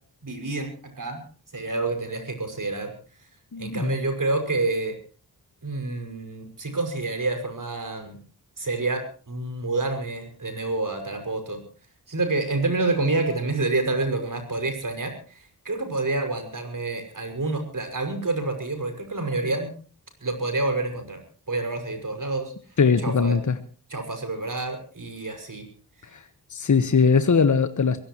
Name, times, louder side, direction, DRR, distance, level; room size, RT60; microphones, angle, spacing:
voice 1, 0.2-0.7 1.0-1.2 1.5-2.9 3.6-5.0 5.6-8.2 8.6-11.6 12.1-19.7 20.2-21.2 21.5-22.5 23.0-23.4 23.9-25.7, right 2 dB, 50° right, 6 dB, 6.1 m, -28 dB
voice 2, 3.5-3.9 22.8-23.6 26.1-26.2 26.5-28.0, left 5 dB, 50° left, 10 dB, 1.2 m, -20 dB
23.0 x 17.5 x 3.1 m, 0.40 s
cardioid pair, 55°, 40 cm